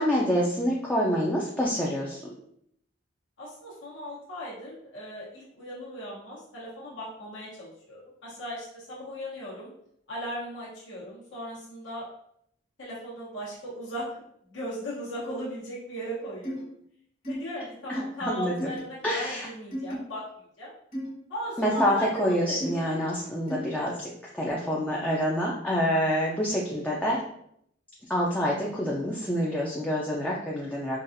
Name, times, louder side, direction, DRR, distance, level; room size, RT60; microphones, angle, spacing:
voice 1, 0.0-2.2 17.9-18.5 19.0-19.5 21.6-27.2 28.1-31.0, equal, 5° left, -4 dB, 0.4 m, -27 dB
voice 2, 3.4-9.7 10.1-12.1 12.8-14.1 14.5-16.7 17.3-20.2 20.6-20.7 21.3-22.8, equal, 75° left, -7 dB, 1.0 m, -37 dB
sound 1, 16.4-16.6 17.2-17.4 17.9-18.1 18.6-18.8 19.7-19.9 20.9-21.1 21.7-21.9 22.6-22.7 23.5-23.7, equal, 45° left, 1.3 m, -33 dB
3.9 x 2.4 x 2.6 m, 0.71 s
head